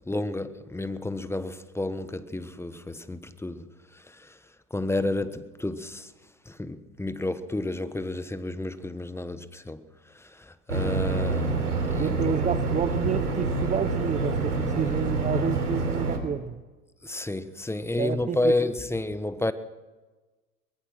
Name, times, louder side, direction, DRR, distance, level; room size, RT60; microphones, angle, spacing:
voice 1, 0.1-3.7 3.9-4.4 4.7-6.1 6.5-9.8 10.1-11.6 11.9-12.3 17.0-19.5, left 2 dB, 5° left, 1.1 m, -31 dB
sound 1, 10.7-16.2, right 3 dB, 90° right, 3.6 m, -27 dB
voice 2, 12.0-16.6 18.0-18.6, right 7 dB, 15° right, 0.7 m, -29 dB
23.5 x 21.5 x 6.2 m
hypercardioid pair, 95°, 44 cm